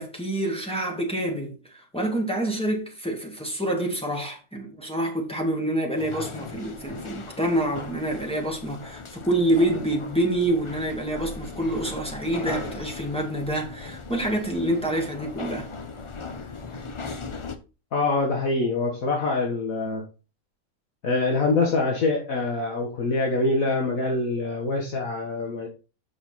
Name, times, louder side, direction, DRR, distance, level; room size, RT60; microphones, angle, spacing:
voice 1, 0.0-15.7, right 1 dB, 5° left, 2.1 m, -27 dB
sound 1, 6.0-17.6, left 4 dB, 40° left, 0.4 m, -38 dB
voice 2, 17.9-20.0 21.0-25.7, left 3 dB, 70° left, 1.8 m, -25 dB
7.2 x 5.6 x 4.1 m
omnidirectional pair, 1.5 m